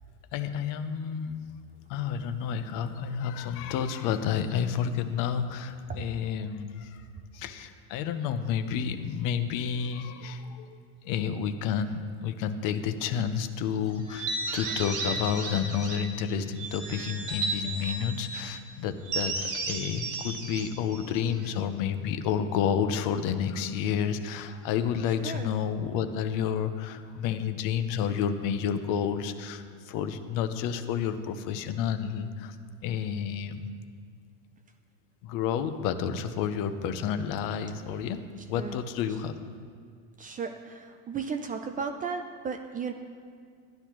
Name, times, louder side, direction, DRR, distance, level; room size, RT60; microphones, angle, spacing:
voice 1, 0.3-1.5 1.9-7.0 7.3-10.8 11.0-32.6 32.8-33.7 35.2-38.2 38.5-39.3, left 8 dB, 55° left, 9 dB, 0.7 m, -30 dB
sound 1, 14.1-16.2 16.6-18.5 19.1-21.6, right 3 dB, 50° right, 1.7 m, -34 dB
voice 2, 40.2-42.9, right 5 dB, 25° right, 6 dB, 0.3 m, -35 dB
11.5 x 10.0 x 3.1 m, 2.1 s
supercardioid pair, 120°, 38 cm